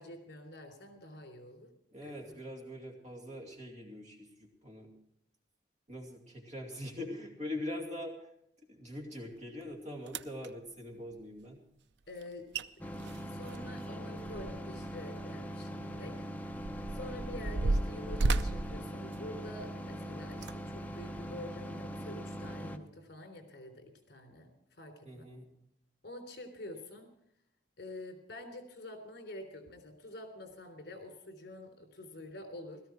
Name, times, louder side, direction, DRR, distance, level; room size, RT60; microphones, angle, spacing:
voice 1, 0.0-1.7 2.0-2.4 12.1-12.5 13.3-16.1 16.6-25.3 26.0-27.1 27.8-32.8, left 1 dB, 65° left, 5 dB, 3.4 m, -47 dB
voice 2, 1.9-4.9 5.9-8.1 8.7-11.6 25.0-25.5, left 1 dB, 40° right, 1 dB, 2.7 m, -43 dB
sound 1, 9.6-9.7 10.1-10.5 12.2-12.3 12.5-12.7 13.0-14.8 15.1-15.3 16.0-19.7 20.3-20.5 21.2-21.3, right 2 dB, 70° right, 0.6 m, -33 dB
sound 2, 12.8-22.8, equal, 10° left, 0.8 m, -42 dB
17.0 x 14.0 x 4.6 m, 0.73 s
head